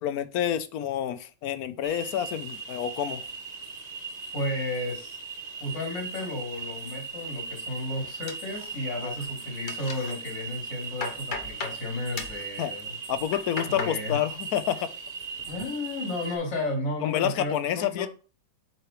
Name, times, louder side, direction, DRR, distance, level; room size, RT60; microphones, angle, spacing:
voice 1, 0.0-3.2 9.0-9.1 12.6-12.7 13.1-14.8 17.0-18.1, left 10 dB, 65° left, 1.0 m, -28 dB
sound 1, 1.8-16.4, right 5 dB, 45° right, 0.5 m, -38 dB
voice 2, 4.3-5.2 5.6-13.0 13.7-14.2 15.5-18.1, left 2 dB, 85° left, 3.8 m, -33 dB
sound 2, 8.3-9.1 9.4-10.1 10.6-11.8 12.2-12.4 13.1-14.0 14.3-14.8 15.2-15.7, left 4 dB, 35° left, 0.8 m, -37 dB
7.6 x 5.0 x 3.1 m
omnidirectional pair, 1.9 m